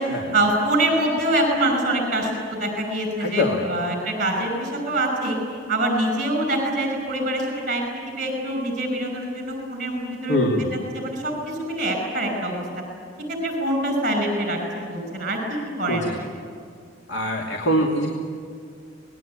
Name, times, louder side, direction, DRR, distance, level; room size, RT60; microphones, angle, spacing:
voice 1, 0.3-5.4 5.7-10.4 10.9-12.6 13.3-16.1, right 1 dB, 45° right, 4 dB, 5.9 m, -25 dB
voice 2, 3.2-3.8 10.3-10.7 15.9-16.1 17.1-18.1, equal, 65° left, 0 dB, 2.8 m, -23 dB
27.0 x 20.5 x 9.0 m, 2.2 s
head